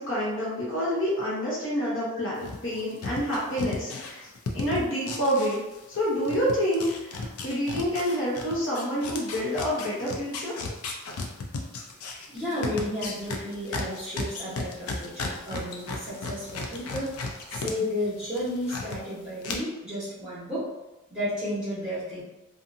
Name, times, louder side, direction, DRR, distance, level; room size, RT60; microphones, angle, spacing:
voice 1, 0.0-4.3 4.5-5.6 5.9-10.5, equal, 55° left, -7 dB, 1.0 m, -28 dB
sound 1, 2.4-6.0 6.2-17.7 18.0-19.0 19.4-19.5, left 3 dB, 80° left, 0.4 m, -34 dB
voice 2, 12.3-15.1 15.5-17.1 17.5-20.6 21.1-22.2, left 1 dB, 5° right, -12 dB, 1.1 m, -32 dB
2.7 x 2.4 x 2.6 m, 1.0 s
head